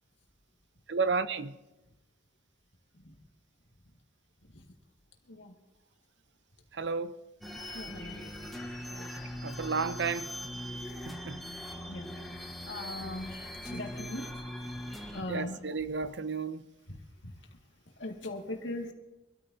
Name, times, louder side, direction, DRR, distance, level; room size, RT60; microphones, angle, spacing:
voice 1, 0.9-1.5 6.7-7.2 9.4-10.3 11.0-11.4 15.3-16.6, right 4 dB, 75° right, 0.7 m, -32 dB
sound 1, 7.4-15.2, left 1 dB, ahead, 1.2 m, -41 dB
voice 2, 7.7-8.3 8.9-9.1 11.9-12.1 12.7-14.3 15.1-15.6 16.9-17.0 18.0-18.9, left 1 dB, 85° left, 2.0 m, -39 dB
24.5 x 13.0 x 2.7 m
head